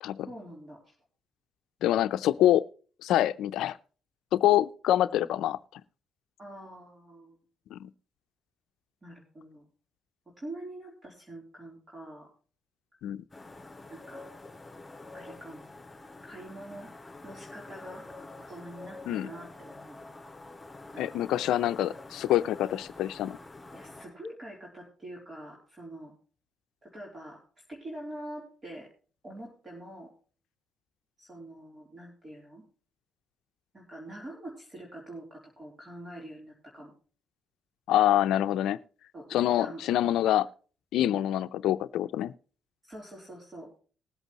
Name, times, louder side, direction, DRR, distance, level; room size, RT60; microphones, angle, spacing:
voice 1, 0.2-0.9 5.1-5.3 6.4-7.4 9.0-9.6 10.4-12.3 13.9-14.3 15.1-15.6 16.2-16.9 17.2-18.0 18.5-20.0 20.9-21.2 23.7-26.1 26.8-27.4 27.7-28.9 29.2-30.1 31.2-32.6 33.7-36.9 39.1-39.3 39.6-39.8 41.0-41.3 42.8-43.7, right 1 dB, 30° right, 3.3 m, -45 dB
voice 2, 1.8-2.6 3.0-3.8 4.3-5.8 7.7-7.9 13.0-13.2 19.1-19.3 21.0-23.4 37.9-38.8 39.3-40.5 40.9-42.3, left 12 dB, 85° left, 0.5 m, -26 dB
sound 1, 13.3-24.0, left 2 dB, 20° left, 4.3 m, -47 dB
20.0 x 8.2 x 2.9 m
cardioid pair, 90°, 0 cm